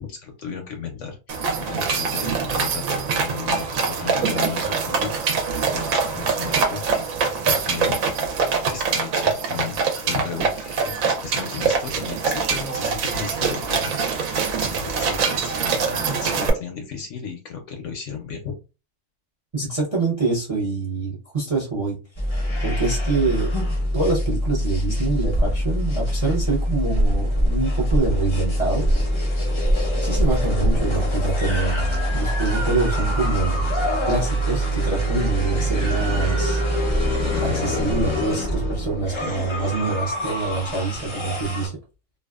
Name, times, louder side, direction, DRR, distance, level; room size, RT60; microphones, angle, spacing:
voice 1, 0.0-5.1 5.7-7.1 7.4-8.4 8.7-18.6, left 6 dB, 70° left, 4 dB, 0.8 m, -35 dB
sound 1, 1.3-16.5, right 5 dB, 70° right, 1.0 m, -24 dB
voice 2, 19.5-22.0 22.6-23.5 23.9-28.9 30.0-31.8 32.1-33.6 34.1-36.6 37.4-41.7, right 3 dB, 40° right, -3 dB, 0.5 m, -25 dB
sound 2, 22.2-41.7, equal, 30° left, 0.5 m, -23 dB
2.6 x 2.3 x 2.2 m, 0.30 s
omnidirectional pair, 1.6 m